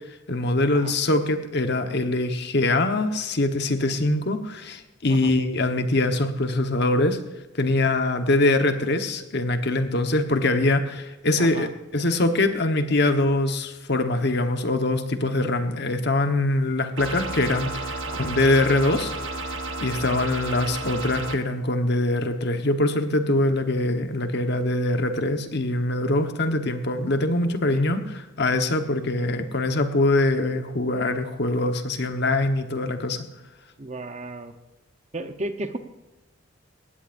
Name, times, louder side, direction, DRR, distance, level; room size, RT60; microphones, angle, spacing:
voice 1, 0.3-7.2 7.5-11.7 11.9-19.1 19.8-33.2, left 2 dB, 60° left, 7 dB, 1.3 m, -23 dB
voice 2, 11.4-11.7 18.0-18.3 33.8-34.5 35.1-35.8, right 2 dB, 35° right, 8 dB, 1.0 m, -34 dB
sound 1, 17.0-21.4, right 2 dB, 80° right, 1.3 m, -32 dB
19.5 x 16.0 x 2.6 m, 1.0 s
head